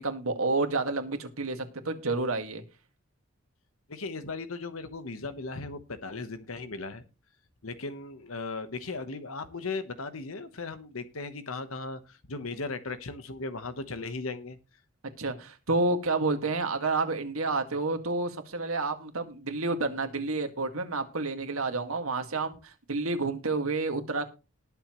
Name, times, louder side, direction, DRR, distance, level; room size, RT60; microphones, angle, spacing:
voice 1, 0.0-2.6 15.2-24.3, right 3 dB, 85° right, 1.9 m, -29 dB
voice 2, 3.9-7.0 7.6-14.6, left 3 dB, 80° left, 1.1 m, -37 dB
19.5 x 7.1 x 3.1 m
head